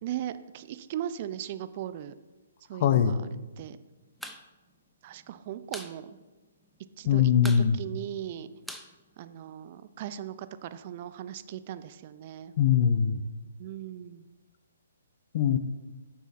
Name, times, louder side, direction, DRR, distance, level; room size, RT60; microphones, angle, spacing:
voice 1, 0.0-2.1 2.7-3.3 3.6-3.8 5.0-6.2 7.0-8.5 9.2-12.5 13.6-14.3, right 11 dB, 45° right, 13 dB, 0.6 m, -38 dB
voice 2, 2.8-3.2 7.1-7.8 12.6-13.2 15.3-15.6, left 8 dB, 45° left, 11 dB, 0.7 m, -22 dB
sound 1, 4.1-4.4 4.7-4.8 5.1-6.0 6.3-6.4 6.6-7.0 7.4-9.8, equal, ahead, 0.6 m, -43 dB
9.5 x 7.1 x 4.3 m, 1.2 s
hypercardioid pair, 135°, 0 cm